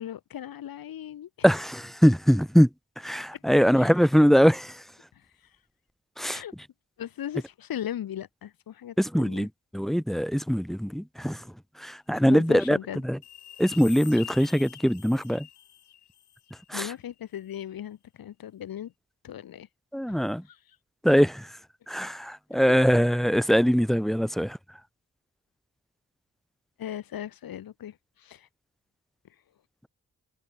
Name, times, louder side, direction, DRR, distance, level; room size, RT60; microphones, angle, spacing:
voice 1, 0.0-1.3 3.3-3.4 3.8-3.9 5.1-5.3 6.3-6.5 7.0-9.5 12.3-13.0 16.7-18.9 19.2-19.7 20.1-20.8 22.5-22.6 26.8-28.5, left 10 dB, 60° left, 0.8 m, -38 dB
voice 2, 1.4-2.7 3.0-4.8 6.2-6.4 9.0-11.4 11.8-12.8 13.0-13.2 13.6-15.5 16.7-16.9 19.9-20.4 21.0-21.5 21.9-24.6, equal, ahead, 0.6 m, -22 dB
sound 1, 13.2-16.7 17.1-17.2, left 12 dB, 80° left, 1.2 m, -45 dB
supercardioid pair, 40°, 40 cm